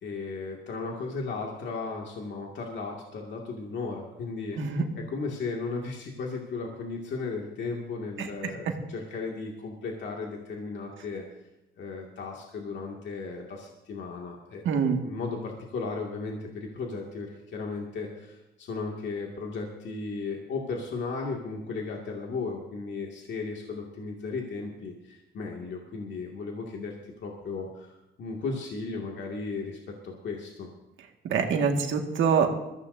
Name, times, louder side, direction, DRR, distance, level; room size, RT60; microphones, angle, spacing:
voice 1, 0.0-4.6 5.0-11.2 11.8-14.7 15.0-29.8 30.0-30.7, left 4 dB, 65° left, -1 dB, 2.2 m, -35 dB
voice 2, 14.7-15.0 31.3-32.5, right 6 dB, 75° right, 3 dB, 1.9 m, -24 dB
21.5 x 15.0 x 2.7 m, 0.96 s
cardioid pair, 90°, 20 cm